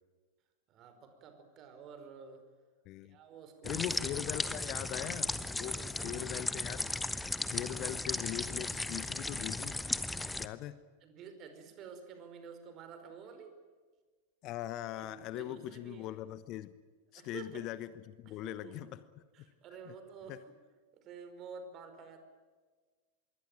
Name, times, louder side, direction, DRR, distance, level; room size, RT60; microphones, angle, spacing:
voice 1, 0.7-2.4 3.0-3.8 4.1-4.8 5.7-6.1 11.0-13.5 15.0-16.2 17.1-17.6 18.2-18.9 19.3-20.4 20.9-22.2, right 6 dB, 35° right, 8 dB, 4.9 m, -50 dB
voice 2, 2.8-3.2 3.6-5.8 6.0-6.9 7.5-9.8 10.4-10.8 14.4-16.7 17.1-19.0 19.8-19.9 20.3-20.4, left 14 dB, 40° left, 15 dB, 1.0 m, -41 dB
sound 1, 3.6-10.5, left 2 dB, 5° left, 1.1 m, -36 dB
26.0 x 22.5 x 8.9 m, 1.4 s
figure-of-eight pair, 90°, 0 cm